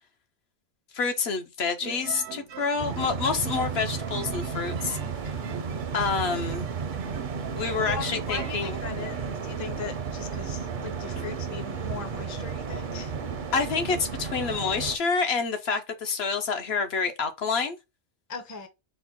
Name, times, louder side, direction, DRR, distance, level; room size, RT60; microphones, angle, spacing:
voice 1, 0.9-5.0 5.9-6.6 7.6-8.8 13.5-17.8, left 5 dB, 65° left, 0.8 m, -28 dB
sound 1, 1.8-8.8, right 8 dB, 80° right, 1.0 m, -42 dB
sound 2, 2.8-15.0, right 5 dB, 55° right, 0.6 m, -33 dB
voice 2, 5.2-5.6 7.9-13.1 18.3-18.7, left 5 dB, 25° left, 0.4 m, -39 dB
4.3 x 2.1 x 4.4 m
omnidirectional pair, 1.3 m